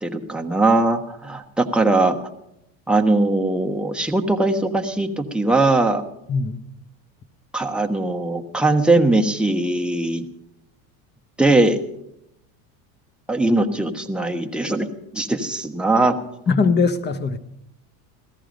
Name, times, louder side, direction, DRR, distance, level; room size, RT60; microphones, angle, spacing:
voice 1, 0.0-2.1 2.9-6.0 7.5-10.2 11.4-11.8 13.3-14.9 15.1-16.2, right 2 dB, ahead, 2 dB, 1.2 m, -20 dB
voice 2, 6.3-6.6 16.5-17.4, left 4 dB, 25° left, 12 dB, 1.1 m, -20 dB
17.0 x 14.0 x 5.2 m, 0.81 s
supercardioid pair, 125°, 44 cm